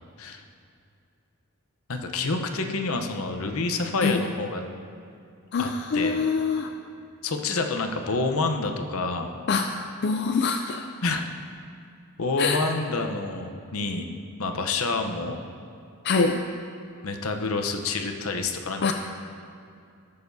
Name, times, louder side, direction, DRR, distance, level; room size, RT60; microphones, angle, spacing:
voice 1, 1.9-4.6 5.6-5.7 5.9-6.2 7.2-9.3 11.0-11.2 12.2-14.0 14.4-15.4 17.0-18.9, left 3 dB, 70° left, 5 dB, 0.8 m, -28 dB
voice 2, 5.5-6.7 9.5-9.7 10.0-10.9 12.4-12.6 16.0-16.4 18.8-18.9, left 4 dB, 50° left, 4 dB, 0.4 m, -24 dB
20.0 x 6.8 x 2.7 m, 2.5 s
head